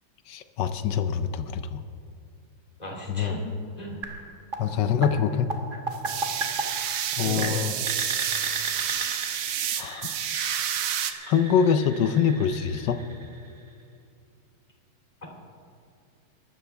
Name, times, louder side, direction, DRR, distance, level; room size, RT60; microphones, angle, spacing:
voice 1, 0.3-1.8 3.1-3.3 4.6-5.5 7.2-7.7 9.8-10.5 11.3-13.0, left 7 dB, 70° left, 10 dB, 1.3 m, -25 dB
voice 2, 2.8-3.4 3.8-4.0 7.2-7.6, equal, 20° left, -1 dB, 2.6 m, -35 dB
sound 1, 4.0-13.8, right 3 dB, 30° right, 1.1 m, -36 dB
sound 2, 5.9-11.1, right 10 dB, 90° right, 1.6 m, -29 dB
23.0 x 12.5 x 3.4 m, 2.5 s
omnidirectional pair, 2.3 m